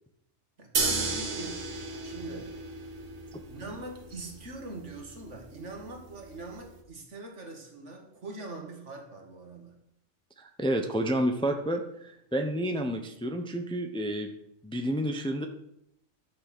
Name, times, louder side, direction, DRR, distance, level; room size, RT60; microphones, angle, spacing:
voice 1, 0.6-1.6 2.0-2.5 3.5-9.8, right 2 dB, 65° right, 3 dB, 2.1 m, -42 dB
sound 1, 0.7-6.8, right 3 dB, 85° right, 1.8 m, -35 dB
voice 2, 10.4-14.3 14.6-15.5, right 1 dB, 5° left, 5 dB, 0.8 m, -30 dB
11.5 x 6.5 x 6.1 m, 0.77 s
omnidirectional pair, 1.3 m